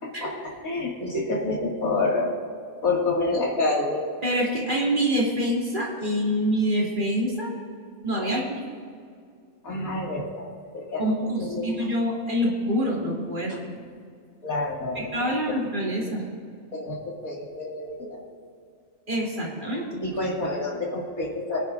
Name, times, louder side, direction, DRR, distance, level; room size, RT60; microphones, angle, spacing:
voice 1, 0.0-2.3 2.8-4.1 8.2-8.3 9.6-10.5 10.7-11.1 11.4-11.7 13.5-13.6 14.4-15.6 16.7-18.2 20.0-21.6, left 2 dB, 90° left, -3 dB, 2.7 m, -28 dB
voice 2, 4.2-7.5 8.0-8.6 11.0-13.6 14.9-16.2 19.1-19.9, equal, 35° right, -4 dB, 2.7 m, -26 dB
22.5 x 10.5 x 2.6 m, 2.2 s
omnidirectional pair, 1.4 m